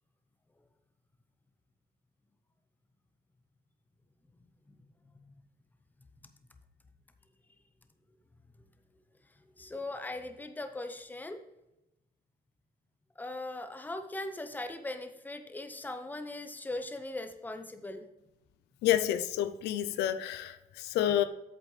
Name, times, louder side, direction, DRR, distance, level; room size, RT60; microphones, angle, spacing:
voice 1, 9.6-11.4 13.2-18.0, left 2 dB, 10° left, 0.8 m, -39 dB
voice 2, 18.8-21.2, left 12 dB, 80° left, 0.5 m, -29 dB
8.3 x 7.3 x 3.3 m
cardioid pair, 110°, 17 cm